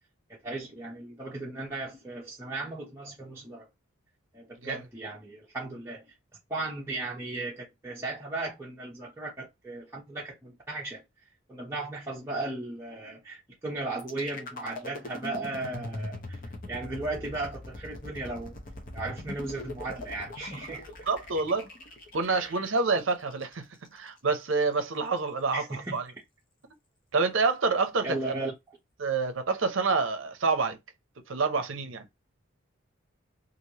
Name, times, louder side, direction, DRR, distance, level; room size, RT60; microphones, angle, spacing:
voice 1, 0.4-3.7 4.3-6.0 6.5-11.0 11.5-16.4 16.7-18.6 18.9-20.9 22.3-22.5 25.5-25.9 28.0-28.5, right 2 dB, 10° right, 0.7 m, -36 dB
sound 1, 14.0-24.0, left 2 dB, 40° left, 0.7 m, -41 dB
voice 2, 21.1-21.7 22.1-23.6 23.9-26.0 27.1-28.5 29.0-30.8 31.3-32.1, right 4 dB, 65° right, 0.6 m, -27 dB
3.2 x 2.5 x 2.8 m
head